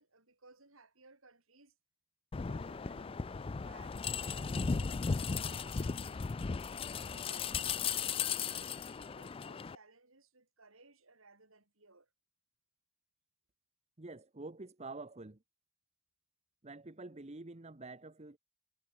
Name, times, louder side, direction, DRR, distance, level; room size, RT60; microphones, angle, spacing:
voice 1, 0.0-1.8 2.3-6.4 7.0-12.1, right 3 dB, 80° right, 7.9 m, -61 dB
sound 1, 2.3-9.7, left 5 dB, 25° left, 0.4 m, -36 dB
voice 2, 14.0-15.4 16.6-18.4, right 3 dB, 30° right, 1.1 m, -47 dB
head